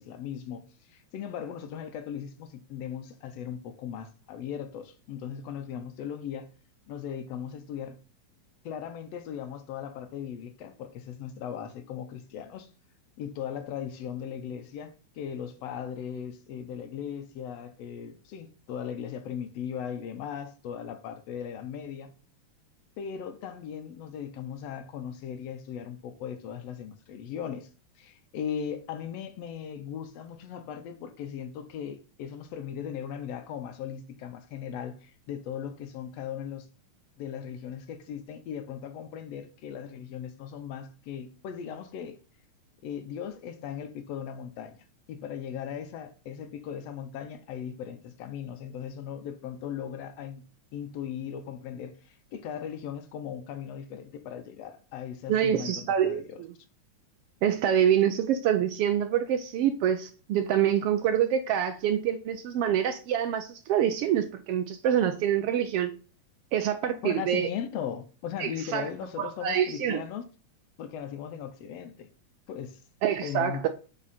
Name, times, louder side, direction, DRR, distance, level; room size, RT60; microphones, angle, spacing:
voice 1, 0.0-6.5 6.9-8.0 8.6-12.7 13.2-22.1 23.0-27.7 28.0-36.7 37.2-42.2 42.8-50.4 50.7-56.4 67.0-70.2 70.8-72.1 72.5-72.8 73.2-73.6, left 8 dB, 70° left, 1.9 m, -38 dB
voice 2, 55.3-56.5 57.4-65.9 66.5-67.5 68.4-68.9 69.2-70.0 73.0-73.7, right 9 dB, 75° right, 1.3 m, -26 dB
7.5 x 5.6 x 4.2 m
omnidirectional pair, 3.3 m